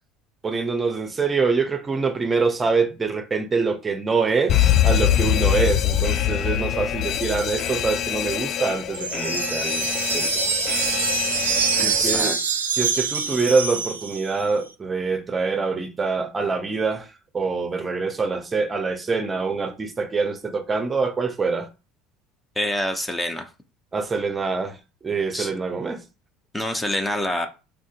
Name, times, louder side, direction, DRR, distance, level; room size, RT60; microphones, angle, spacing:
voice 1, 0.4-10.5 10.9-11.0 11.8-12.4 12.8-17.1 17.3-21.7 23.9-24.8 25.0-26.0, right 4 dB, 25° right, 0.6 m, -25 dB
Alarm, 4.5-12.2, left 11 dB, 50° left, 0.3 m, -24 dB
sound 1, 8.9-14.4, right 6 dB, 85° right, 0.4 m, -25 dB
voice 2, 11.8-12.4 22.6-23.5 25.3-25.5 26.5-27.5, left 1 dB, 10° left, 0.6 m, -26 dB
3.6 x 2.5 x 2.5 m
hypercardioid pair, 70°, 0 cm